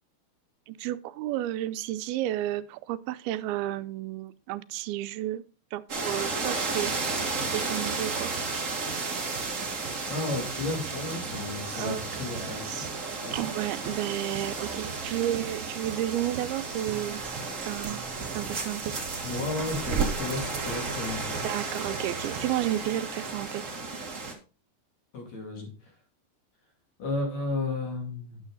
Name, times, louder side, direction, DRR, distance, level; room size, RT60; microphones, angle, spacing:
voice 1, 0.7-5.4 5.7-6.9 7.5-8.3 11.7-12.0 13.3-17.2 17.7-18.0 18.3-18.9 21.4-23.6, right 13 dB, 90° right, 2.5 m, -32 dB
sound 1, 5.9-24.3, right 4 dB, 40° right, 1.1 m, -33 dB
Guitar, 6.8-22.8, right 8 dB, 75° right, 2.5 m, -43 dB
voice 2, 10.1-12.8 13.2-13.5 19.2-21.4 25.1-25.7 27.0-28.4, left 3 dB, 50° left, 3.4 m, -33 dB
9.5 x 7.3 x 3.9 m
omnidirectional pair, 4.3 m